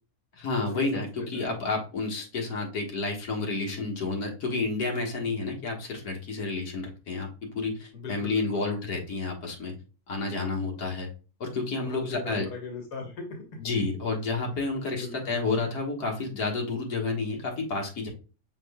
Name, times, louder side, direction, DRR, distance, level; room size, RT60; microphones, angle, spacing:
voice 1, 0.3-9.7 10.1-11.1 11.4-12.5 13.6-18.1, left 3 dB, 70° left, 0 dB, 1.8 m, -30 dB
voice 2, 1.2-1.5 7.9-8.6 11.8-13.6 14.9-15.4, left 4 dB, 90° left, 3 dB, 1.7 m, -39 dB
6.1 x 3.7 x 2.2 m, 0.34 s
omnidirectional pair, 1.7 m